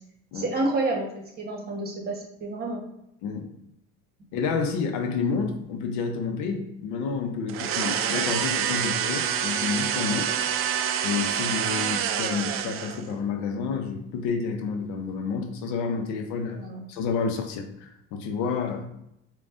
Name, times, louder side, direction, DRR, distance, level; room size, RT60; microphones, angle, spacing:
voice 1, 0.3-2.8 16.5-16.8, right 2 dB, 30° right, -1 dB, 1.3 m, -29 dB
voice 2, 4.3-10.3 11.0-16.6 16.9-18.9, left 5 dB, 75° left, 5 dB, 0.7 m, -29 dB
sound 1, 7.5-13.1, right 9 dB, 50° right, 0.4 m, -27 dB
5.3 x 2.4 x 2.5 m, 0.80 s
supercardioid pair, 100°, 30 cm